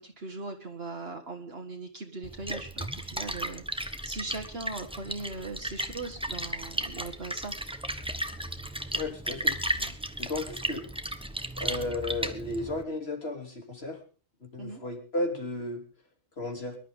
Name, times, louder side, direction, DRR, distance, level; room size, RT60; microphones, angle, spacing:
voice 1, 0.0-7.5 9.8-9.9 14.6-14.8, right 3 dB, 65° right, 2 dB, 1.9 m, -39 dB
Splash splatter, 2.2-12.8, right 1 dB, 5° right, 0.9 m, -35 dB
voice 2, 8.9-9.6 10.2-10.8 11.6-14.0 14.4-15.8 16.4-16.8, left 2 dB, 70° left, 3 dB, 3.3 m, -34 dB
24.0 x 11.5 x 3.6 m, 0.36 s
omnidirectional pair, 1.1 m